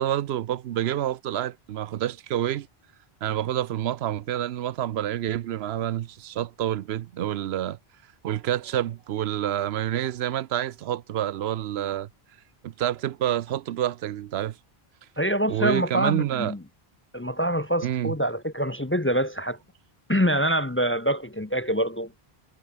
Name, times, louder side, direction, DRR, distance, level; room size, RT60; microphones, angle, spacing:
voice 1, 0.0-2.7 3.2-7.8 8.2-12.1 12.6-14.6 15.5-16.5 17.8-18.1, right 11 dB, 90° right, 0.9 m, -28 dB
voice 2, 15.2-16.6 17.1-19.6 20.1-22.1, equal, 15° left, 0.5 m, -25 dB
omnidirectional pair, 1.0 m